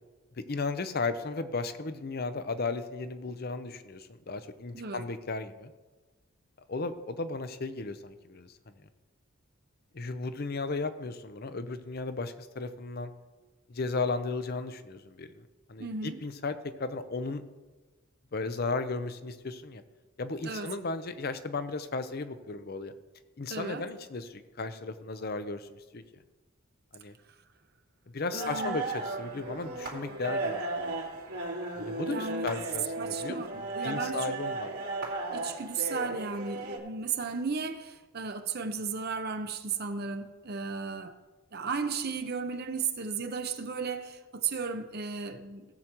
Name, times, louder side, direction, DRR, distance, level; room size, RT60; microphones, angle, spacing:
voice 1, 0.3-5.7 6.7-8.5 9.9-13.1 13.7-17.4 18.3-19.8 20.2-22.9 23.4-26.0 26.9-27.1 28.1-30.9 31.8-34.7, left 3 dB, 50° left, 0.6 m, -35 dB
voice 2, 15.8-16.2 20.4-20.7 23.5-23.9 28.3-28.8 32.1-32.6 33.0-34.4 35.3-41.2 41.5-45.7, right 5 dB, 50° right, 0.7 m, -35 dB
sound 1, 28.4-36.8, right 2 dB, 90° right, 2.8 m, -35 dB
17.0 x 7.8 x 3.0 m
head